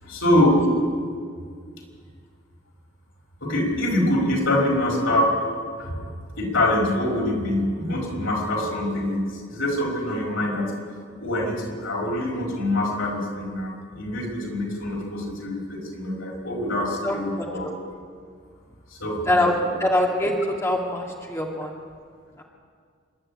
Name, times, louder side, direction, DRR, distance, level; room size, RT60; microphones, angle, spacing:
voice 1, 0.0-0.7 3.4-5.4 5.8-6.1 6.4-10.7 11.2-17.7 18.9-19.8, left 1 dB, 80° left, -1 dB, 5.2 m, -24 dB
voice 2, 17.0-17.7 19.3-21.7 22.4-22.5, left 1 dB, 15° left, -1 dB, 2.2 m, -24 dB
27.0 x 12.0 x 8.8 m, 2.1 s
head